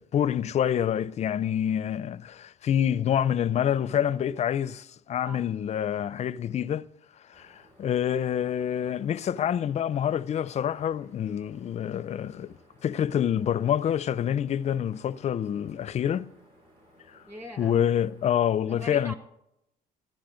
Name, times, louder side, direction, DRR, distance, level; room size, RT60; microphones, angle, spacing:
voice 1, 0.0-6.9 7.3-12.5 12.8-16.3 17.1-17.2 17.6-19.1, left 9 dB, 40° left, 0.4 m, -27 dB
sound 1, 7.3-18.4, equal, 60° right, 6.8 m, -59 dB
voice 2, 17.3-17.8 18.6-19.1, equal, 10° right, 1.7 m, -41 dB
14.5 x 10.5 x 5.1 m
cardioid pair, 110°, 17 cm